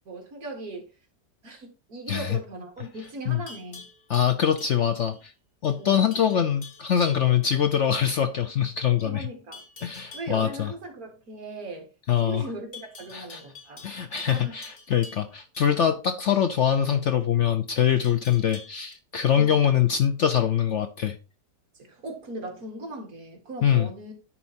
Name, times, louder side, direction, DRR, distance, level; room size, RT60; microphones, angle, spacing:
voice 1, 0.1-0.9 1.4-3.9 5.8-6.0 9.0-9.6 10.1-11.9 12.2-13.8 14.3-14.6 19.4-19.7 21.7-24.1, right 2 dB, 55° right, 2.4 m, -38 dB
voice 2, 2.1-2.4 3.3-3.4 4.1-5.3 5.6-9.3 9.8-10.7 12.1-12.5 13.1-13.4 13.8-21.2 23.6-23.9, left 9 dB, 65° left, 0.7 m, -23 dB
Livestock farm animals working animals, 3.0-5.3 5.6-5.9 6.1-7.4 9.5-10.4 12.7-15.7 18.0-18.9, left 3 dB, 35° left, 1.5 m, -47 dB
10.0 x 4.2 x 4.2 m
omnidirectional pair, 1.9 m